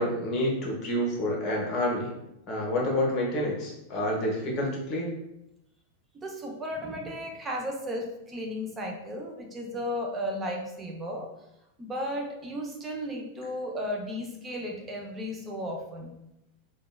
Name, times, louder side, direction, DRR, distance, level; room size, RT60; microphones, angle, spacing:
voice 1, 0.0-2.1 2.5-5.1, left 1 dB, 40° left, -2 dB, 0.8 m, -28 dB
voice 2, 6.1-11.3 11.8-16.1, equal, 20° right, 1 dB, 0.5 m, -34 dB
2.8 x 2.2 x 2.2 m, 0.86 s
figure-of-eight pair, 90°, 0 cm